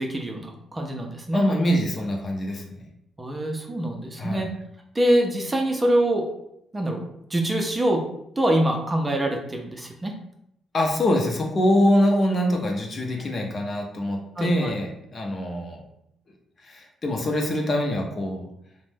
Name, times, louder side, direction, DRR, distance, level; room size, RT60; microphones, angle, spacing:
voice 1, 0.0-1.4 3.2-4.5 4.9-6.2 6.7-7.0 7.3-8.0 8.4-10.1 14.4-14.7, right 1 dB, 20° right, 2 dB, 0.5 m, -24 dB
voice 2, 1.3-2.8 4.2-4.5 10.7-15.8 16.6-18.5, left 1 dB, 45° left, 1 dB, 0.6 m, -24 dB
2.5 x 2.1 x 3.3 m, 0.78 s
cardioid pair, 75°, 0 cm